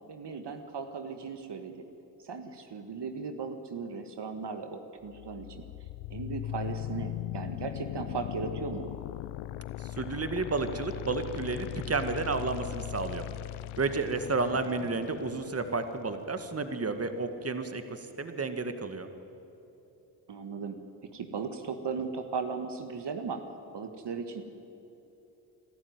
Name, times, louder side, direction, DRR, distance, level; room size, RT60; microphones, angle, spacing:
voice 1, 0.1-1.8 2.2-5.6 6.1-8.9 20.3-23.4 23.7-24.4, right 5 dB, 55° right, 7 dB, 1.8 m, -37 dB
sound 1, 5.0-17.0, left 15 dB, 80° left, 0.6 m, -39 dB
voice 2, 9.8-13.2 13.8-19.1, right 3 dB, 30° right, 8 dB, 1.9 m, -31 dB
25.5 x 12.5 x 9.6 m, 3.0 s
supercardioid pair, 50°, 48 cm